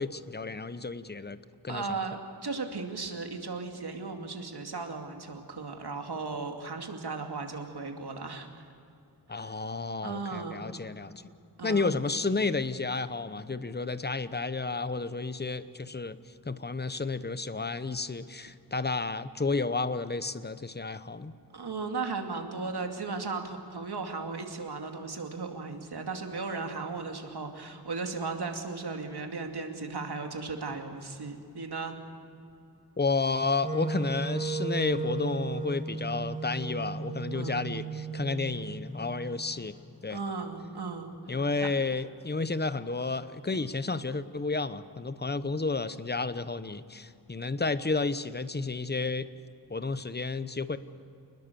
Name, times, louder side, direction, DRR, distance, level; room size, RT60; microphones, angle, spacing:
voice 1, 0.0-1.4 1.6-1.9 9.3-11.1 11.6-16.2 16.4-21.3 33.0-39.8 40.0-40.2 41.3-49.3 49.7-50.8, left 3 dB, 25° left, 13 dB, 0.9 m, -31 dB
voice 2, 1.7-8.6 9.3-9.5 10.0-10.6 11.6-12.0 21.5-32.0 37.3-37.6 40.1-41.7, right 4 dB, 70° right, 4 dB, 2.6 m, -36 dB
Wind instrument woodwind instrument, 33.6-39.7, right 3 dB, 20° right, 2.1 m, -35 dB
29.0 x 20.5 x 7.0 m, 2.6 s
wide cardioid pair, 90°, 41 cm